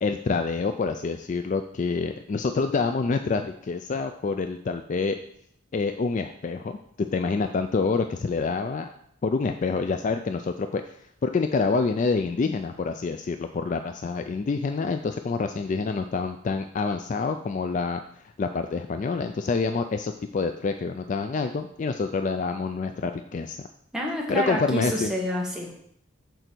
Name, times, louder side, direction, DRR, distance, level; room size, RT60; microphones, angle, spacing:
voice 1, 0.0-5.2 5.7-6.8 7.1-8.9 9.2-10.8 11.2-18.0 18.4-23.6 24.3-25.1, left 4 dB, 35° left, 7 dB, 0.3 m, -27 dB
voice 2, 23.9-25.8, equal, 5° right, -3 dB, 1.3 m, -28 dB
6.7 x 4.0 x 6.0 m, 0.69 s
head